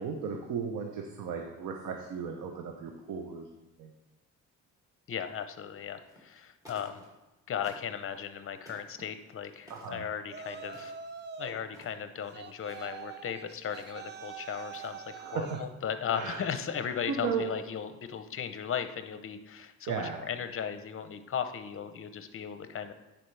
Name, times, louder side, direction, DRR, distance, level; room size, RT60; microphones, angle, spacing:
voice 1, 0.0-3.5 3.8-3.9 9.7-10.1 15.2-15.6 16.1-16.5 17.1-17.4 19.9-20.3, right 6 dB, 85° right, 3 dB, 0.8 m, -35 dB
voice 2, 5.1-7.0 7.5-10.9 11.4-22.9, left 8 dB, 45° left, 9 dB, 0.7 m, -36 dB
sound 1, 6.0-6.4 6.6-7.3 7.6-8.1 8.6-9.0 9.7-10.0 10.6-11.3 11.6-12.1 12.6-12.9 13.7-14.1 14.6-15.2, equal, 10° right, 2.2 m, -55 dB
Yell, 10.3-11.6 12.3-15.7, right 6 dB, 35° right, 0.5 m, -44 dB
10.0 x 4.4 x 3.3 m, 1.0 s
cardioid pair, 90°, 30 cm